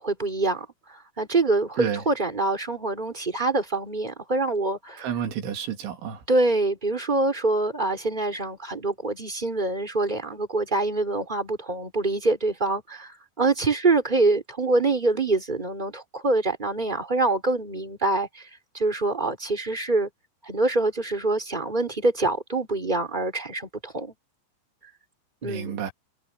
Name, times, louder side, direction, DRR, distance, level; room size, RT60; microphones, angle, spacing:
voice 1, 0.0-5.0 6.3-18.5 18.7-20.1 20.4-24.1 25.4-25.8, right 2 dB, 10° right, 3.1 m, -25 dB
voice 2, 5.0-6.2 25.4-25.9, right 8 dB, 75° right, 5.5 m, -30 dB
omnidirectional pair, 5.6 m